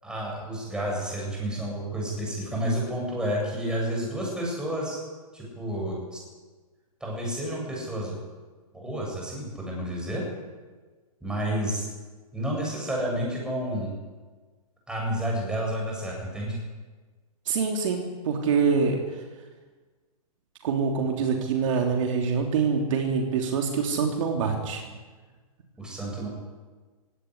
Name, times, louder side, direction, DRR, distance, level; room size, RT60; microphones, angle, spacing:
voice 1, 0.0-5.0 5.3-6.2 7.0-8.2 8.7-10.3 11.2-11.8 12.3-13.9 14.9-16.6 25.8-26.3, equal, 5° right, -2 dB, 7.9 m, -30 dB
voice 2, 17.4-19.0 20.6-24.9, right 5 dB, 55° right, 2 dB, 3.3 m, -25 dB
17.5 x 17.0 x 9.9 m, 1.4 s
hypercardioid pair, 145°, 19 cm